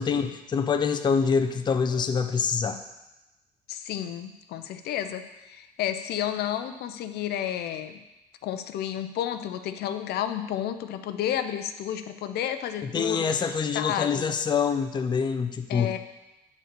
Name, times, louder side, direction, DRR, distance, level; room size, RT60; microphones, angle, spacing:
voice 1, 0.0-2.8 12.8-15.9, left 6 dB, 25° left, 7 dB, 0.5 m, -25 dB
voice 2, 3.7-8.0 8.4-14.3 15.7-16.0, left 10 dB, 70° left, 9 dB, 0.6 m, -31 dB
8.5 x 3.9 x 6.7 m, 0.99 s
cardioid pair, 110°, 17 cm